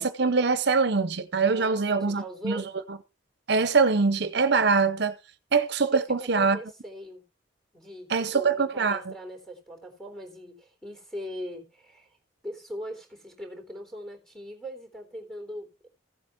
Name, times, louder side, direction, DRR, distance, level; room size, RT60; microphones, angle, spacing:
voice 1, 0.0-2.6 3.5-5.2 5.5-6.6 8.1-9.1, right 4 dB, 60° right, 0.8 m, -23 dB
voice 2, 1.5-2.7 5.9-7.2 7.7-12.2 12.4-15.9, equal, 5° left, 3.6 m, -40 dB
15.5 x 8.1 x 4.4 m
head